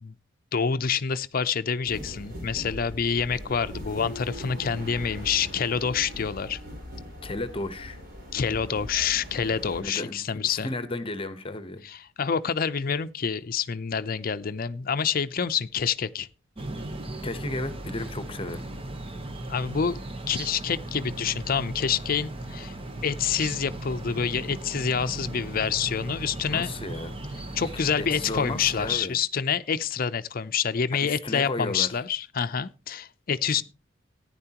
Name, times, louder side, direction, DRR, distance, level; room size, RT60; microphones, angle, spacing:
voice 1, 0.5-6.6 8.3-10.7 11.8-16.3 19.5-20.0 20.3-22.7 23.0-26.7 27.5-33.6, left 6 dB, 50° left, 0.6 m, -27 dB
sound 1, 1.8-9.8, equal, 50° right, 4.4 m, -40 dB
voice 2, 7.2-8.0 9.8-11.8 17.2-18.7 26.5-27.1 28.0-29.2 31.0-31.9 33.6-33.7, left 2 dB, 30° left, 1.0 m, -34 dB
sound 2, 16.6-29.0, right 1 dB, 30° right, 1.1 m, -37 dB
15.0 x 9.8 x 2.9 m
head